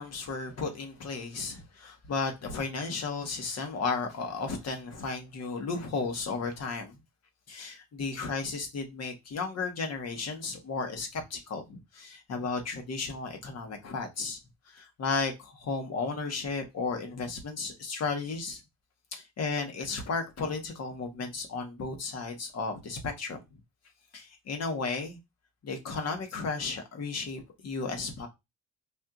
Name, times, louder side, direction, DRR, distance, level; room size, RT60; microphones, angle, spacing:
voice 1, 0.0-7.0 7.5-14.4 14.7-18.6 19.1-23.4 24.1-25.2 25.6-28.3, left 4 dB, 55° left, 1.2 m, -34 dB
4.3 x 2.7 x 2.4 m
cardioid pair, 90°, 30 cm